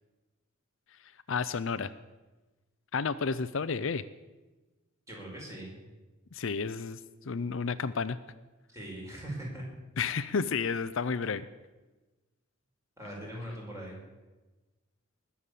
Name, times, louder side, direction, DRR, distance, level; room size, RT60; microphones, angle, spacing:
voice 1, 1.0-1.9 2.9-4.0 6.3-8.2 10.0-11.4, left 5 dB, 65° left, 13 dB, 0.5 m, -31 dB
voice 2, 5.1-5.8 8.7-9.7 13.0-14.0, right 1 dB, 15° right, -3 dB, 5.2 m, -40 dB
20.5 x 7.1 x 8.3 m, 1.2 s
head